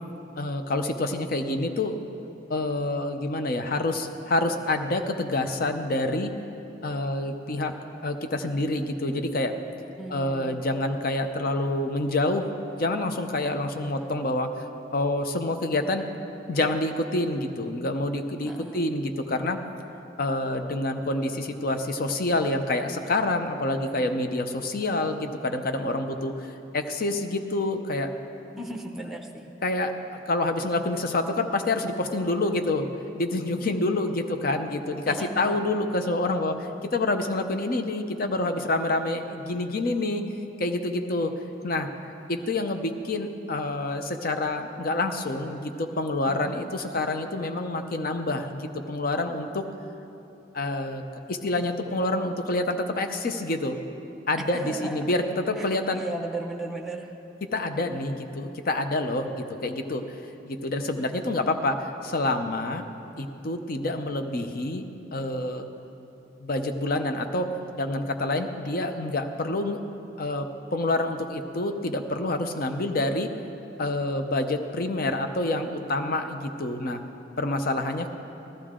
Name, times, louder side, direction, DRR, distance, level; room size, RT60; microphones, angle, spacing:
voice 1, 0.4-2.0 2.5-6.3 6.8-7.7 8.0-9.5 10.1-12.5 12.8-16.1 16.5-19.6 20.2-28.1 29.6-32.9 33.1-40.2 40.6-41.3 41.6-41.9 42.3-49.6 50.5-51.0 51.3-53.8 54.3-56.0 57.5-60.0 60.4-62.8 63.2-64.8 65.1-65.7 66.4-67.5 67.7-69.8 70.2-73.3 73.8-77.0 77.4-78.1, left 2 dB, 55° left, 7 dB, 0.7 m, -27 dB
voice 2, 10.0-10.6 18.5-18.9 28.6-29.5 35.1-35.6 46.2-46.6 54.5-54.9 56.0-57.1, right 1 dB, ahead, 2 dB, 0.8 m, -36 dB
15.5 x 12.0 x 3.7 m, 2.9 s
head